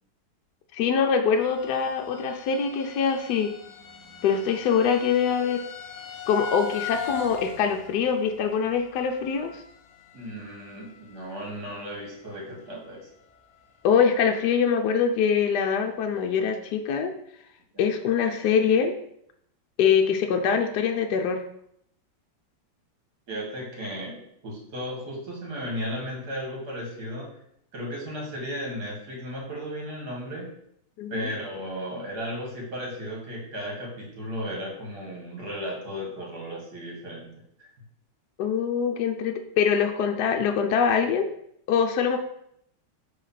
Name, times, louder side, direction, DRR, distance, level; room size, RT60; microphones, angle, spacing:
voice 1, 0.7-3.5 4.2-5.6 6.3-9.5 13.8-17.1 17.8-18.9 19.8-21.4 31.0-31.3 38.4-41.3 41.7-42.2, left 6 dB, 70° left, 4 dB, 1.1 m, -23 dB
sound 1, 1.4-12.1 12.3-12.9 13.3-13.4 13.8-13.9, left 8 dB, 90° left, 0.6 m, -40 dB
voice 2, 10.1-13.1 17.7-17.9 23.3-27.3 27.7-30.5 31.1-37.3 37.6-37.7, equal, 60° right, -3 dB, 2.5 m, -35 dB
5.1 x 3.8 x 5.6 m, 0.72 s
omnidirectional pair, 2.0 m